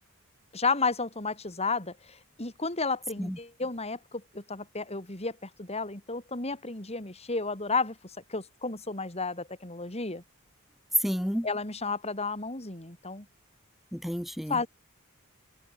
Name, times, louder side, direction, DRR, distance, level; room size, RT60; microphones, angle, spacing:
voice 1, 0.5-8.0 8.3-10.2 11.4-13.3 14.5-14.7, left 4 dB, 30° left, 3.5 m, -32 dB
voice 2, 10.9-11.5 13.9-14.6, equal, ahead, 1.1 m, -29 dB
head